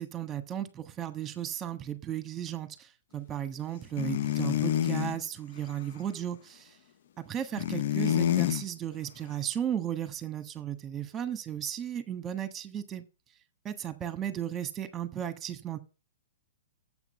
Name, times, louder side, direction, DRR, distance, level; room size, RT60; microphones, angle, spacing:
voice 1, 0.0-6.7 7.2-13.0 13.6-15.8, right 10 dB, 20° right, 11 dB, 1.3 m, -35 dB
sound 1, 4.0-5.2 7.6-8.6, left 11 dB, 60° left, 0.6 m, -27 dB
7.7 x 5.8 x 6.8 m, 0.32 s
hypercardioid pair, 130°, 0 cm